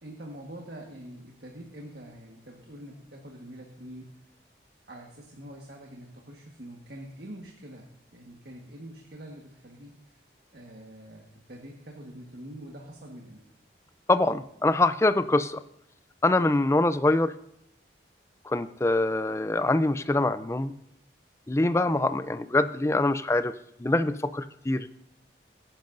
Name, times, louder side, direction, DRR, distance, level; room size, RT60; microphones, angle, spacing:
voice 1, 0.0-4.1 4.9-10.2 10.5-13.4, right 1 dB, 65° right, 0 dB, 1.5 m, -45 dB
voice 2, 14.1-15.6 16.2-17.3 18.5-20.7 21.5-23.5 23.8-24.9, left 2 dB, 15° left, 12 dB, 0.4 m, -24 dB
20.0 x 10.5 x 2.6 m, 0.75 s
head